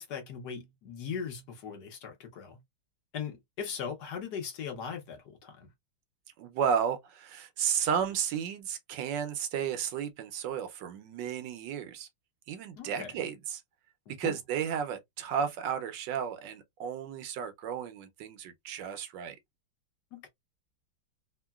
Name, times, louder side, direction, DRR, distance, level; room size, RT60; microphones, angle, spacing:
voice 1, 0.0-2.6 3.1-5.7 12.8-13.2 14.1-14.4 20.1-20.3, left 7 dB, 65° left, 1.4 m, -39 dB
voice 2, 6.4-12.1 12.5-13.6 14.2-19.4, right 8 dB, 80° right, 1.3 m, -33 dB
3.6 x 2.1 x 2.3 m
omnidirectional pair, 2.0 m